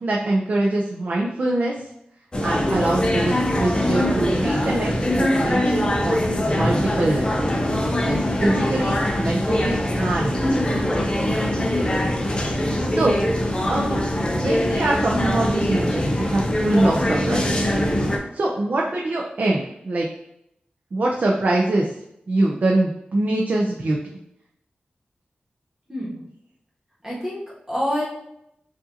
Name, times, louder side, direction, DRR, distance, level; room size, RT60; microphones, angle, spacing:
voice 1, 0.0-1.7 2.4-4.9 5.2-7.4 8.0-10.9 12.9-14.0 14.4-17.7 18.3-20.1 20.9-21.9 22.3-24.0, right 2 dB, 55° right, -2 dB, 0.5 m, -24 dB
sound 1, 2.3-18.2, left 1 dB, 25° left, 0.6 m, -22 dB
voice 2, 25.9-26.2 27.0-28.1, equal, 15° right, -7 dB, 1.3 m, -27 dB
4.8 x 2.6 x 2.7 m, 0.78 s
wide cardioid pair, 115°, 3 cm